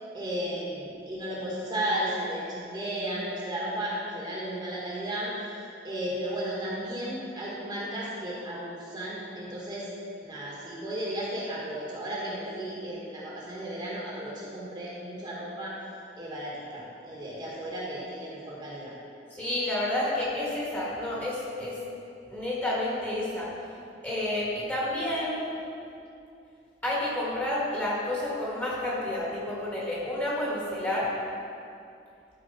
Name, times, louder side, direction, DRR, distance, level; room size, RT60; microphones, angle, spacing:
voice 1, 0.1-5.3 5.8-9.9 10.2-15.7 16.2-18.9, right 1 dB, 25° right, -6 dB, 1.4 m, -34 dB
voice 2, 19.3-21.8 22.3-23.5 24.0-25.5 26.8-31.1, left 1 dB, 10° left, -6 dB, 1.7 m, -30 dB
12.5 x 4.4 x 4.2 m, 2.5 s
head